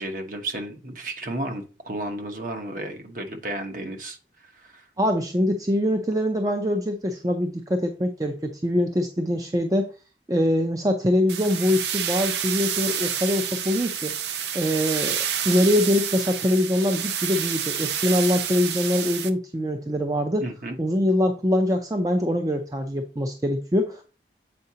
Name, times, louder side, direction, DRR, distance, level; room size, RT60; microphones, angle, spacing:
voice 1, 0.0-4.2 4.4-4.8 20.4-20.8, right 1 dB, 50° right, 5 dB, 1.0 m, -33 dB
voice 2, 5.0-9.9 10.3-14.1 14.5-15.2 15.4-20.4 20.8-24.0, left 1 dB, 20° right, 5 dB, 0.5 m, -23 dB
sound 1, 11.3-19.3, right 9 dB, 75° right, 0.5 m, -29 dB
7.8 x 4.7 x 2.8 m, 0.34 s
head